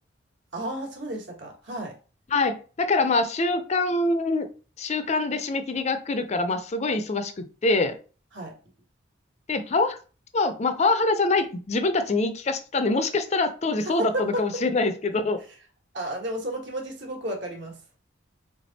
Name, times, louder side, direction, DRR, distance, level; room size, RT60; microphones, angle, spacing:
voice 1, 0.5-1.9 8.3-8.5 14.0-14.4 15.9-17.8, right 1 dB, 60° right, 1 dB, 1.4 m, -32 dB
voice 2, 2.3-4.5 4.8-8.0 9.5-10.0 10.3-15.4, left 3 dB, 35° left, 9 dB, 0.4 m, -24 dB
3.6 x 3.3 x 4.0 m, 0.36 s
head